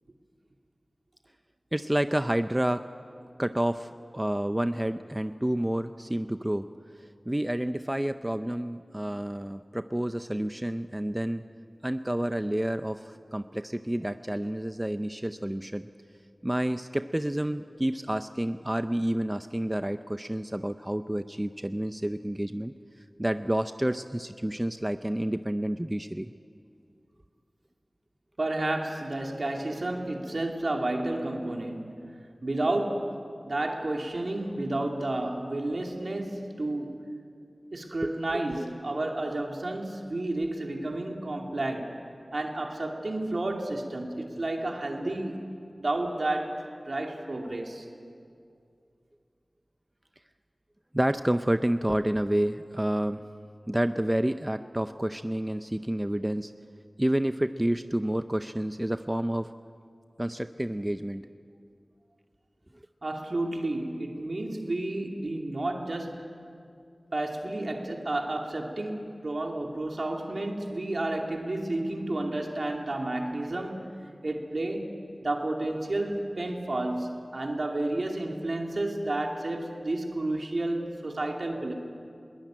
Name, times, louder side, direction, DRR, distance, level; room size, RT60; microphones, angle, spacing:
voice 1, 1.7-2.9 3.4-6.7 7.0-11.4 11.8-15.9 16.4-22.7 23.2-26.3 38.0-38.7 50.9-53.3 53.7-56.5 57.0-59.5 60.2-61.3, right 1 dB, 15° right, 10 dB, 0.6 m, -29 dB
voice 2, 28.4-32.0 32.4-33.1 33.4-37.0 37.7-42.0 42.3-45.4 45.8-47.9 63.0-66.4 67.1-73.9 74.2-74.9 75.2-81.7, right 2 dB, 70° right, 2 dB, 2.7 m, -31 dB
21.0 x 19.5 x 8.9 m, 2.4 s
wide cardioid pair, 40°, 0 cm